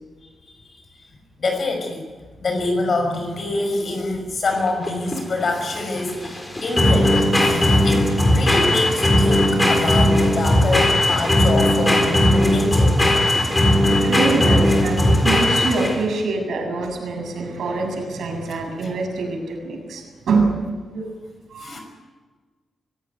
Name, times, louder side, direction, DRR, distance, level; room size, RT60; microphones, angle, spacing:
voice 1, 1.4-2.0 2.4-13.2 21.6-21.8, left 2 dB, 45° left, 4 dB, 5.9 m, -25 dB
sound 1, 4.5-16.2, left 1 dB, 15° left, 3.9 m, -18 dB
voice 2, 13.5-20.5 20.9-21.1 21.5-21.8, right 3 dB, 75° right, 1 dB, 7.4 m, -25 dB
23.5 x 17.0 x 9.9 m, 1.4 s
wide cardioid pair, 155°, 0 cm